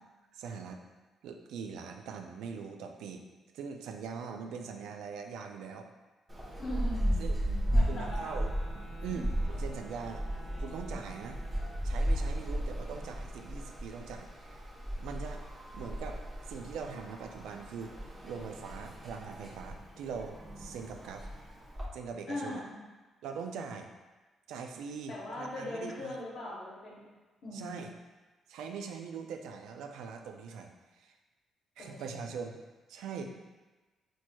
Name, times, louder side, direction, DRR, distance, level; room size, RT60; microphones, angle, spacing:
voice 1, 0.3-0.8 1.2-3.2 3.5-5.9 7.2-7.4 7.9-8.5 9.0-10.2 10.6-11.4 11.8-14.6 15.0-15.4 15.7-17.9 18.2-21.3 21.9-22.6 23.2-23.9 24.5-26.1 27.5-27.9 28.5-30.7 31.0-31.1 31.8-32.6 32.9-33.3, right 6 dB, 85° right, 5 dB, 0.3 m, -42 dB
sound 1, 6.3-21.9, equal, 20° right, 0.9 m, -35 dB
voice 2, 6.6-8.4 9.1-9.2 22.3-22.7 25.1-27.1 27.4-27.9 31.8-32.0, left 1 dB, 65° left, -7 dB, 0.9 m, -40 dB
sound 2, 7.5-12.1, right 2 dB, 50° right, 1.4 m, -54 dB
4.3 x 3.0 x 2.2 m, 1.2 s
cardioid pair, 90°, 0 cm